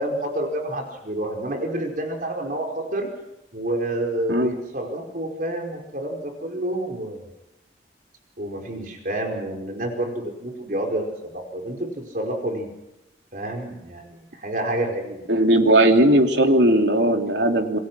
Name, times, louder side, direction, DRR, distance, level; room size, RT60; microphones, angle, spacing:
voice 1, 0.0-3.1 3.5-7.2 8.4-12.7 13.3-15.2, right 1 dB, 50° right, 2 dB, 4.9 m, -29 dB
voice 2, 15.3-17.8, right 1 dB, 90° right, 4 dB, 2.9 m, -18 dB
28.5 x 22.0 x 6.2 m, 0.92 s
head